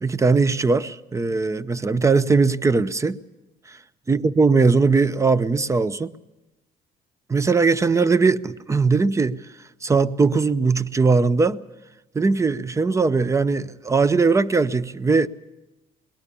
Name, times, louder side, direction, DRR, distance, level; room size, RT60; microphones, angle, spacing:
voice 1, 0.0-3.2 4.1-6.1 7.3-9.4 9.8-11.6 12.1-15.3, right 4 dB, 20° right, 0.6 m, -20 dB
22.5 x 19.0 x 7.0 m
cardioid pair, 110°, 17 cm